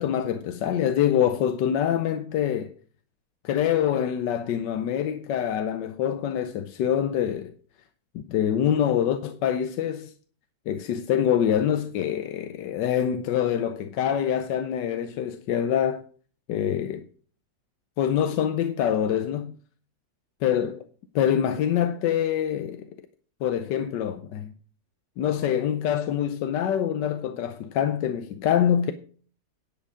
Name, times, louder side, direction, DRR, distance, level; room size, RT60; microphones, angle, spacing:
voice 1, 0.0-2.7 3.4-7.5 8.1-10.1 10.7-16.0 16.5-17.1 18.0-19.5 20.4-20.8 21.1-22.9 23.4-24.5 25.2-28.9, left 9 dB, 80° left, 1.4 m, -25 dB
11.0 x 7.9 x 5.0 m
omnidirectional pair, 1.9 m